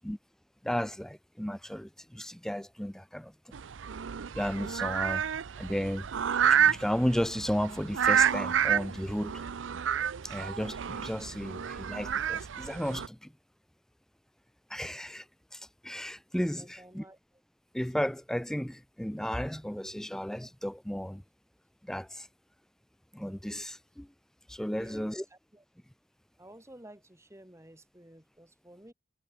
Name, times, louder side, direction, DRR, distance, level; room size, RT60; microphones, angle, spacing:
voice 1, 0.6-3.3 4.3-5.2 5.6-6.1 6.5-9.4 10.2-13.3 14.7-15.3 15.5-17.0 17.7-21.2 21.9-22.3 23.1-24.1 24.5-25.2, equal, 5° left, 0.4 m, -34 dB
sound 1, 3.5-13.1, right 8 dB, 80° right, 0.5 m, -29 dB
voice 2, 16.6-17.4 24.7-25.6 26.4-28.9, right 1 dB, 15° right, 3.9 m, -53 dB
head